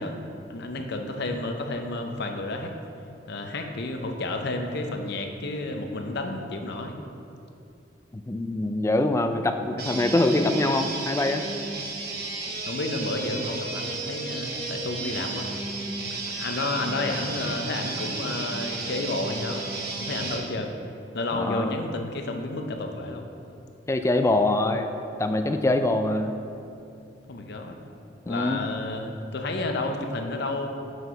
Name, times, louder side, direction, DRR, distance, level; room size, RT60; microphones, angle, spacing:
voice 1, 0.0-2.7 3.3-7.0 12.6-15.5 16.1-19.7 20.0-20.8 21.1-23.3 27.3-27.8 28.3-30.7, left 2 dB, 60° left, 4 dB, 0.7 m, -31 dB
voice 2, 8.1-11.4 21.3-21.8 23.9-24.9 25.2-26.3 28.3-28.7, left 2 dB, 15° left, 7 dB, 0.3 m, -24 dB
sound 1, 9.8-20.5, right 3 dB, 55° right, 1.0 m, -33 dB
6.5 x 4.6 x 5.7 m, 2.7 s
head